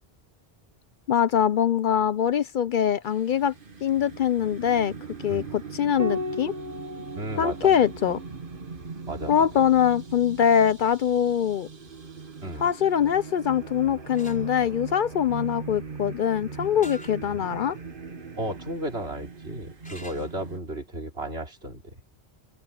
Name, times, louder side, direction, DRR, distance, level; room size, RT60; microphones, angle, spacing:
voice 1, 1.1-3.5 3.8-4.9 5.2-6.5 7.4-8.2 9.3-11.7 12.6-17.8, left 9 dB, 60° left, 0.6 m, -23 dB
sound 1, 3.0-20.6, right 5 dB, 55° right, 1.8 m, -40 dB
Piano, 6.0-10.8 12.5-13.3, left 2 dB, 40° right, 1.4 m, -38 dB
voice 2, 7.2-7.7 9.1-9.5 12.4-12.6 17.3-17.4 18.4-21.8, right 1 dB, 80° right, 3.8 m, -34 dB
sound 2, 14.1-14.4 16.8-17.2 17.8-17.9 19.8-20.4, equal, 5° left, 5.1 m, -44 dB
open air
omnidirectional pair, 1.1 m